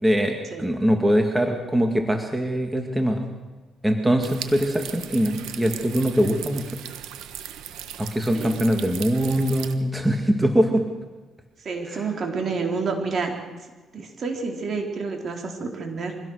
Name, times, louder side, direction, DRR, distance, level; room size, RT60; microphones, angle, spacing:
voice 1, 0.0-3.2 3.8-6.8 8.0-10.9 11.9-12.0, equal, 10° right, 4 dB, 2.2 m, -22 dB
sound 1, 4.2-9.8, right 10 dB, 90° right, 1.4 m, -38 dB
voice 2, 11.6-13.4 13.9-16.2, right 4 dB, 50° right, 2 dB, 4.1 m, -29 dB
24.0 x 17.0 x 6.6 m, 1.2 s
cardioid pair, 90°, 0 cm